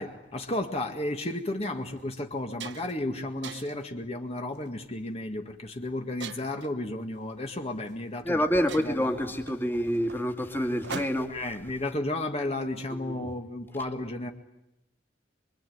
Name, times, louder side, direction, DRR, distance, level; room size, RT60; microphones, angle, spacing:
voice 1, 0.0-8.4 8.8-9.2 11.3-14.3, left 1 dB, 35° left, 2.0 m, -33 dB
sound 1, 1.2-1.3 1.9-2.0 2.3-3.0 3.4-3.9 4.6-4.9 6.2-6.7 7.9-8.0 8.3-8.4 8.7-11.5, right 5 dB, 70° right, 1.2 m, -42 dB
voice 2, 8.2-11.4 12.9-13.3, equal, 10° left, 2.3 m, -28 dB
25.0 x 24.0 x 9.5 m
head